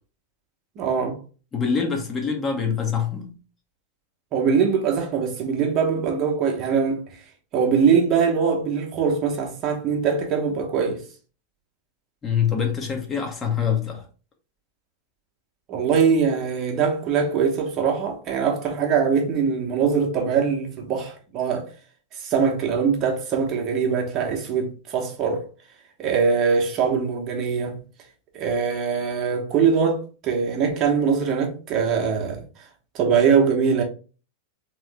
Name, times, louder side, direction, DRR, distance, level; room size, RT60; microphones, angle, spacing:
voice 1, 0.8-1.2 4.3-7.0 7.5-11.0 15.7-21.7 22.1-25.5 26.0-27.8 28.3-32.4 32.9-33.8, right 6 dB, 35° right, 1.0 m, -22 dB
voice 2, 1.5-3.4 12.2-14.1, left 7 dB, 20° left, 1.0 m, -25 dB
3.6 x 3.1 x 3.3 m
figure-of-eight pair, 90°, 0 cm